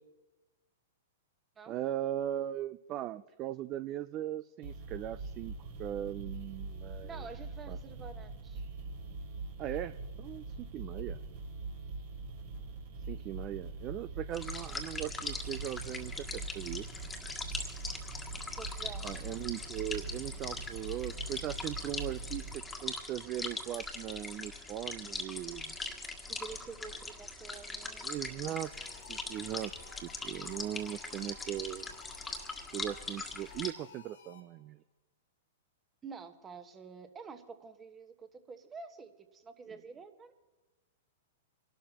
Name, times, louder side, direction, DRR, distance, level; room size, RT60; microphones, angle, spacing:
voice 1, 1.7-5.5 5.8-7.3 7.7-7.8 9.6-11.3 13.1-16.9 19.0-22.5 22.8-25.7 28.0-28.7 29.1-29.7 30.0-31.9 32.7-34.8 39.7-39.8, right 12 dB, 35° right, 13 dB, 0.4 m, -39 dB
sound 1, 4.6-22.6, right 3 dB, 60° right, 3.9 m, -43 dB
voice 2, 7.0-8.6 18.5-19.1 26.3-28.6 36.0-40.3, right 5 dB, 20° right, 8 dB, 1.3 m, -48 dB
sound 2, 14.3-33.7, left 3 dB, 10° left, 1.6 m, -41 dB
sound 3, 28.4-34.7, left 7 dB, 75° left, 1.3 m, -56 dB
26.0 x 12.0 x 3.0 m, 1.1 s
hypercardioid pair, 115°, 0 cm